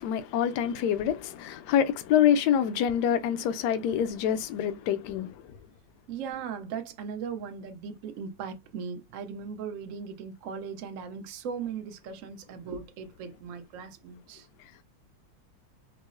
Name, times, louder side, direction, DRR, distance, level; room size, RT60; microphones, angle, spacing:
voice 1, 0.0-5.3, left 9 dB, 75° left, 1.0 m, -26 dB
voice 2, 6.1-14.5, right 6 dB, 80° right, 0.7 m, -38 dB
4.6 x 2.0 x 2.5 m
omnidirectional pair, 2.2 m